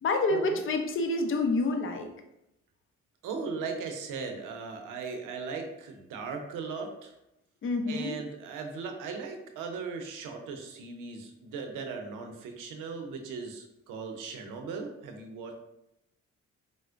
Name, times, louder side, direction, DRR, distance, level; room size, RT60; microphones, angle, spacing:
voice 1, 0.0-2.1 7.6-8.2, left 2 dB, 40° left, 4 dB, 0.6 m, -28 dB
voice 2, 3.2-7.1 7.9-15.6, right 5 dB, 75° right, 4 dB, 0.6 m, -38 dB
4.2 x 2.1 x 2.4 m, 0.85 s
supercardioid pair, 60°, 31 cm